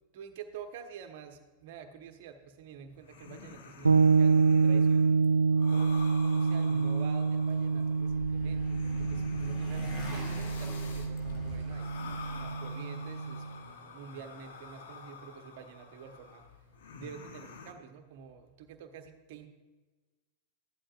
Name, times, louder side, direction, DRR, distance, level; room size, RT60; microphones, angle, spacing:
voice 1, 0.1-5.1 5.7-6.0 6.2-11.9 12.4-16.4 17.0-19.5, right 7 dB, 50° right, 6 dB, 1.0 m, -48 dB
sound 1, 2.9-17.7, left 5 dB, 60° left, 1.0 m, -49 dB
sound 2, 3.8-13.5, right 4 dB, 80° right, 0.4 m, -27 dB
Motorcycle, 7.5-12.6, equal, 45° left, 2.4 m, -43 dB
14.5 x 11.5 x 2.5 m, 1.3 s
figure-of-eight pair, 90°, 0 cm